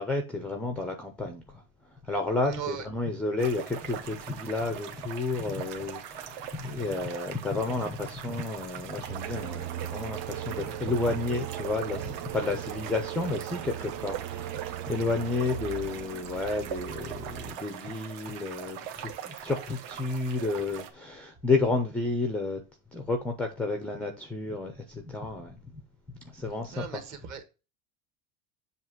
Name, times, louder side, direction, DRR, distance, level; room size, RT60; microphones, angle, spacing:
voice 1, 0.0-1.6 2.0-22.6 22.9-25.8 26.2-27.0, left 3 dB, 5° left, 0.3 m, -31 dB
voice 2, 2.4-2.9 26.7-27.5, right 8 dB, 45° right, 1.4 m, -38 dB
sound 1, 3.4-20.9, right 9 dB, 65° right, 1.2 m, -42 dB
sound 2, 9.1-17.6, right 11 dB, 85° right, 0.9 m, -38 dB
7.3 x 2.8 x 5.9 m
cardioid pair, 170°, 40 cm